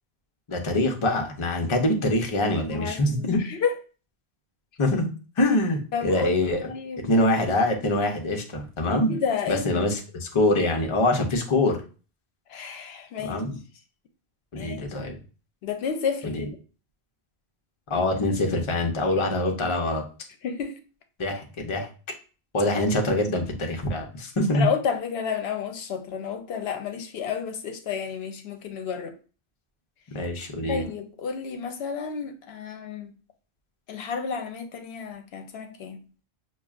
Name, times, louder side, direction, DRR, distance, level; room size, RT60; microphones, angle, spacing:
voice 1, 0.5-3.4 4.8-5.1 5.4-6.7 7.0-9.1 9.5-11.8 13.2-13.5 14.5-15.2 16.2-16.5 17.9-20.0 21.2-21.9 22.5-24.7 30.1-30.8, left 1 dB, 35° left, 0.6 m, -24 dB
voice 2, 2.7-3.7 5.9-7.5 9.1-9.8 12.5-13.4 14.5-14.9 15.6-16.6 20.4-20.8 24.5-29.1 30.7-33.1 33.9-36.0, left 6 dB, 80° left, 0.8 m, -31 dB
5.9 x 2.3 x 2.3 m
omnidirectional pair, 1.1 m